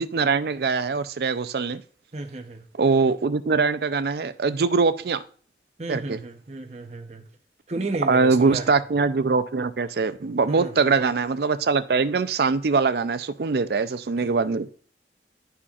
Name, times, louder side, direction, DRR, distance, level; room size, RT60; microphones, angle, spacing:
voice 1, 0.0-1.8 2.8-5.2 5.9-6.2 8.0-14.7, right 4 dB, 60° right, 12 dB, 0.4 m, -22 dB
voice 2, 2.1-2.6 5.8-7.2 7.7-8.8 10.5-10.9 14.2-14.3, right 2 dB, 40° right, 4 dB, 0.8 m, -33 dB
11.0 x 4.3 x 2.4 m, 0.43 s
head